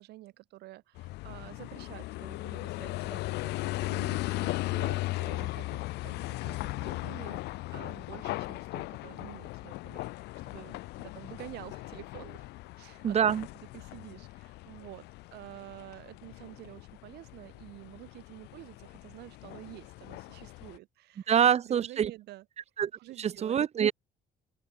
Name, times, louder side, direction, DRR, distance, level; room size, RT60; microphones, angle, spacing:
voice 1, 0.0-12.5 12.8-13.2 13.7-15.1 15.3-21.3 21.6-22.4 23.0-23.7, right 17 dB, 80° right, 1.6 m, -49 dB
sound 1, 1.0-20.8, left 20 dB, 80° left, 0.5 m, -38 dB
voice 2, 13.0-13.5 21.3-22.1 22.8-22.9 23.2-23.9, right 8 dB, 40° right, 0.8 m, -25 dB
open air
cardioid pair, 110°, 17 cm